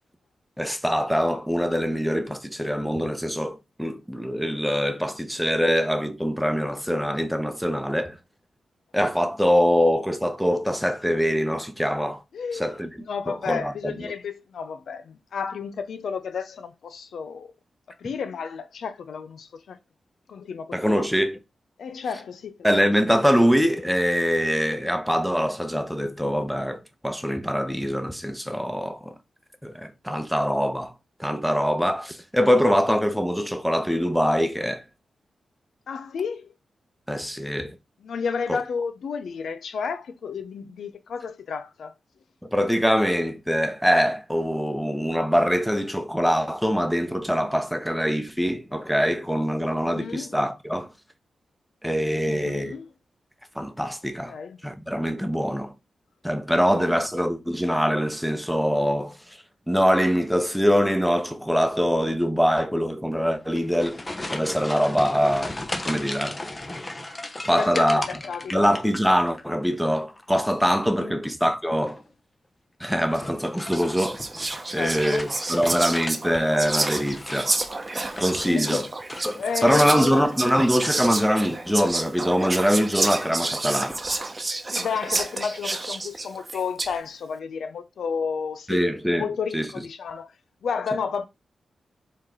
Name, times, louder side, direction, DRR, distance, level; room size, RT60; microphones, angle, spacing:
voice 1, 0.6-8.2 8.9-12.2 12.5-12.9 13.3-13.9 20.7-21.4 22.6-29.1 29.6-30.9 31.2-34.8 37.1-37.8 38.5-38.6 42.4-50.9 51.8-52.8 53.5-54.3 54.6-55.7 56.2-59.2 59.7-64.0 64.3-65.5 65.9-66.4 67.5-68.0 68.5-72.0 72.8-74.2 74.7-77.5 78.2-78.9 79.2-84.0 88.7-89.7, equal, ahead, 0.9 m, -23 dB
voice 2, 12.3-12.8 13.1-17.5 18.0-19.8 20.3-21.0 21.8-22.7 35.9-36.5 38.0-41.9 49.8-50.4 52.2-52.9 54.3-54.6 56.5-57.0 67.5-68.6 71.0-71.2 74.7-75.2 75.5-75.9 78.4-78.9 79.4-80.3 84.7-88.8 89.2-90.3 90.6-91.3, left 6 dB, 80° left, 0.5 m, -32 dB
sound 1, 63.4-69.4 69.7-70.3 71.7-72.1 73.1-76.2 76.5-78.5 79.0-79.6 79.9-80.3 80.8-81.3, left 2 dB, 30° left, 0.9 m, -36 dB
Whispering, 73.2-73.4 73.7-87.0, right 2 dB, 35° right, 0.8 m, -29 dB
4.5 x 3.2 x 3.7 m
cardioid pair, 55°, 0 cm